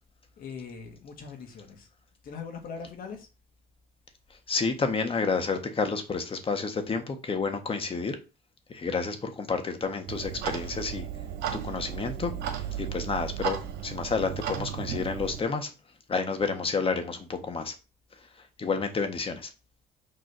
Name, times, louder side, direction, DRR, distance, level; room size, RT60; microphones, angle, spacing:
voice 1, 0.4-1.9 2.2-3.3, left 5 dB, 60° left, 1.8 m, -41 dB
voice 2, 4.5-8.2 8.7-11.0 11.6-12.3 12.8-13.6 13.8-15.7 16.1-17.7 18.6-19.5, left 4 dB, 35° left, 1.5 m, -30 dB
Clock, 10.1-15.4, right 9 dB, 80° right, 1.6 m, -34 dB
6.6 x 3.8 x 6.0 m
cardioid pair, 110°, 17 cm